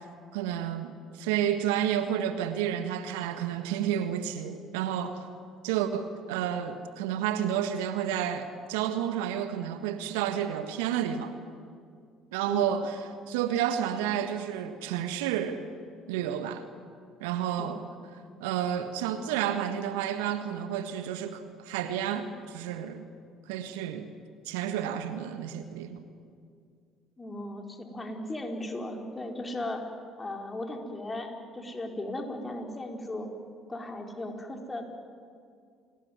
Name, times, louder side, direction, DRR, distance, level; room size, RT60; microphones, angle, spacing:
voice 1, 0.3-5.2 5.6-11.3 12.3-13.0 13.3-15.6 16.1-16.6 17.2-17.8 18.4-23.1 23.5-24.1 24.4-26.1, right 10 dB, 75° right, 1.5 m, -30 dB
voice 2, 27.2-29.9 30.2-33.3 33.7-34.8, left 1 dB, 20° left, 4.5 m, -36 dB
28.0 x 19.0 x 9.5 m
hypercardioid pair, 55°, 0 cm